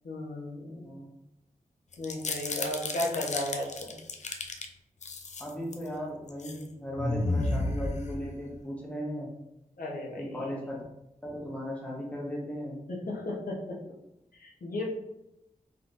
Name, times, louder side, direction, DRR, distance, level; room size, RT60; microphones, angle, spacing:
voice 1, 0.0-0.9 2.0-4.0 9.8-10.5 12.9-13.6 14.4-14.9, left 1 dB, 80° left, -3 dB, 1.1 m, -34 dB
sound 1, 1.9-4.7 5.0-5.9 6.3-6.6 7.0-8.6, left 2 dB, 55° left, 0.5 m, -33 dB
voice 2, 5.4-9.3 10.2-10.8 11.2-12.8, equal, 10° left, -4 dB, 1.3 m, -37 dB
4.3 x 3.7 x 2.6 m, 0.88 s
wide cardioid pair, 85°, 15 cm